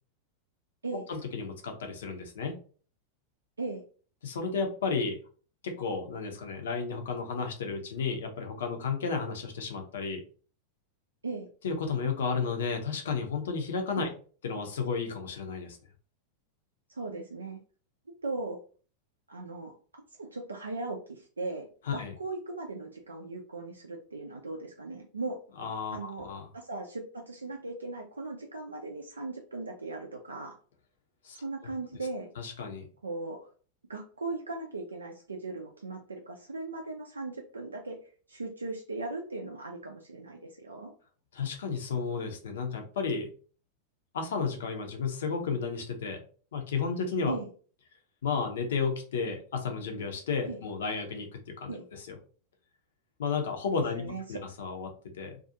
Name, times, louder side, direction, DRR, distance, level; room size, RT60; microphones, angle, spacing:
voice 1, 1.1-2.5 4.2-5.2 5.6-10.2 11.6-14.1 14.4-15.8 21.9-22.1 25.6-26.5 31.2-31.4 32.4-32.9 41.3-43.3 44.1-46.2 46.5-47.3 48.2-52.2 53.2-55.4, left 5 dB, 60° left, 4 dB, 0.6 m, -33 dB
voice 2, 16.9-17.6 18.2-18.6 19.3-19.7 20.2-25.4 25.9-26.3 26.5-30.6 31.3-32.3 33.0-33.5 33.9-38.0 38.3-40.9 47.3-47.5 50.5-50.6 51.7-51.9 53.9-54.4, right 3 dB, 75° right, 1 dB, 0.4 m, -38 dB
2.4 x 2.3 x 2.7 m, 0.41 s
figure-of-eight pair, 90°, 0 cm